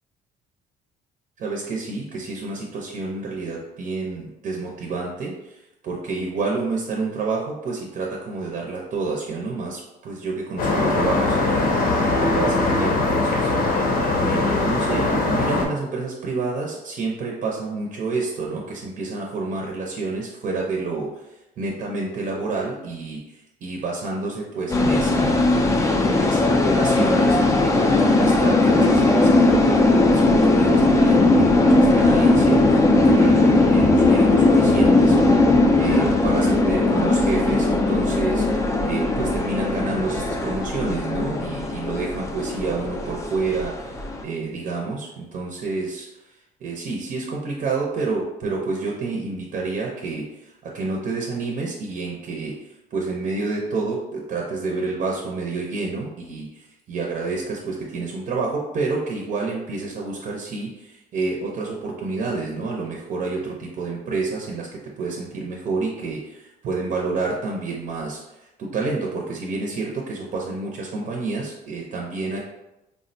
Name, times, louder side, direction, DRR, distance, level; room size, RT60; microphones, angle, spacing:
voice 1, 1.4-13.5 14.2-25.6 26.0-35.2 35.8-72.4, right 3 dB, 50° right, -1 dB, 0.6 m, -29 dB
sound 1, 10.6-15.7, left 2 dB, 55° left, 0.7 m, -21 dB
sound 2, 24.7-44.2, left 2 dB, 15° left, 0.3 m, -18 dB
3.5 x 2.1 x 2.6 m, 0.94 s
cardioid pair, 110°, 17 cm